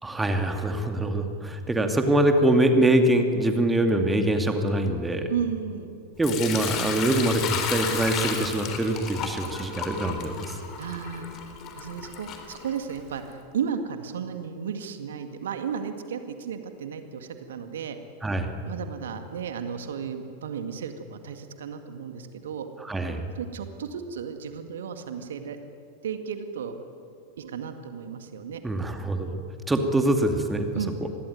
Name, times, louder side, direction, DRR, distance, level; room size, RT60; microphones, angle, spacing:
voice 1, 0.0-5.3 6.2-10.6 18.2-18.5 22.9-23.3 28.6-30.7 31.0-31.1, right 1 dB, 10° right, 5 dB, 2.5 m, -24 dB
voice 2, 5.3-6.0 10.8-11.3 11.7-18.0 18.6-22.7 23.3-25.6 26.0-26.7 27.4-28.6 30.7-31.0, right 7 dB, 60° right, 7 dB, 2.0 m, -34 dB
Sink (filling or washing) / Liquid, 6.2-13.2, left 7 dB, 35° left, 3.7 m, -33 dB
26.5 x 21.5 x 9.4 m, 2.5 s
figure-of-eight pair, 90°, 0 cm